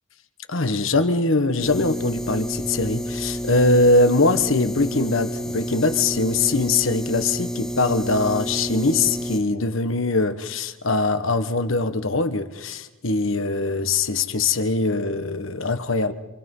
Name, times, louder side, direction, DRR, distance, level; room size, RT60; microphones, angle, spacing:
voice 1, 0.5-16.1, left 3 dB, 80° left, 1.5 m, -22 dB
sound 1, 1.6-9.4, equal, 5° left, 1.9 m, -30 dB
28.0 x 26.0 x 5.6 m
head